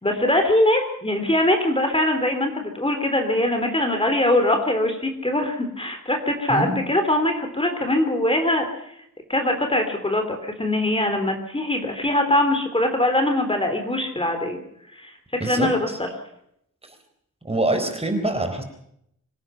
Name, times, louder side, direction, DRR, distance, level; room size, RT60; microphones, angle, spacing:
voice 1, 0.0-8.7 9.3-14.6 15.0-15.9, left 1 dB, 15° left, 5 dB, 3.5 m, -22 dB
voice 2, 6.5-6.8 15.4-16.0 17.4-18.6, right 1 dB, 20° right, 6 dB, 4.1 m, -25 dB
26.0 x 17.5 x 5.8 m, 0.73 s
wide cardioid pair, 130°, 32 cm